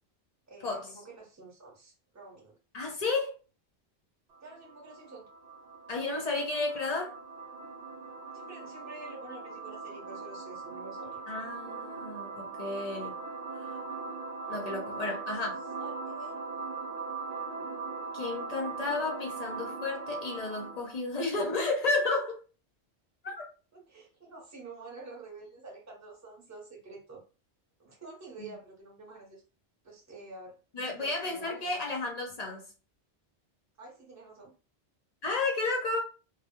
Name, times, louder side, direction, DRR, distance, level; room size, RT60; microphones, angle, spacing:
voice 1, 0.5-2.6 4.4-5.3 8.3-11.2 14.4-15.1 15.8-16.4 18.3-18.9 23.7-27.2 27.8-29.4 29.8-30.6 31.0-31.9 33.8-34.5, right 3 dB, 20° right, 0.6 m, -49 dB
voice 2, 2.7-3.4 5.9-7.1 11.3-13.2 13.5-13.8 14.5-15.6 18.1-22.4 23.2-23.4 30.7-32.6 35.2-36.0, left 3 dB, 50° left, 0.5 m, -32 dB
sound 1, 4.3-21.0, right 4 dB, 65° right, 0.9 m, -40 dB
2.1 x 2.0 x 2.8 m
omnidirectional pair, 1.1 m